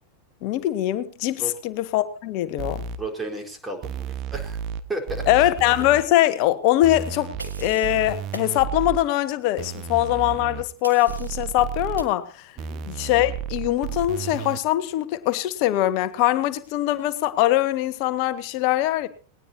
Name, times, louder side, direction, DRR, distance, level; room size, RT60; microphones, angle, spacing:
voice 1, 0.4-2.8 5.3-7.3 7.6-12.5 12.9-19.1, left 14 dB, 45° left, 12 dB, 1.6 m, -22 dB
sound 1, 2.6-3.0 3.8-4.8 5.1-6.0 6.8-9.0 9.6-10.6 11.1-12.0 12.6-14.6, right 8 dB, 35° right, 1.4 m, -32 dB
voice 2, 3.0-4.6 4.9-5.2 12.7-12.8, right 2 dB, 10° right, 3 dB, 4.3 m, -33 dB
sound 2, 7.4-8.0 8.3-8.5 10.8-11.5 12.0-12.2, right 4 dB, 80° right, 1.7 m, -41 dB
19.5 x 19.0 x 2.8 m, 0.37 s
figure-of-eight pair, 90°, 0 cm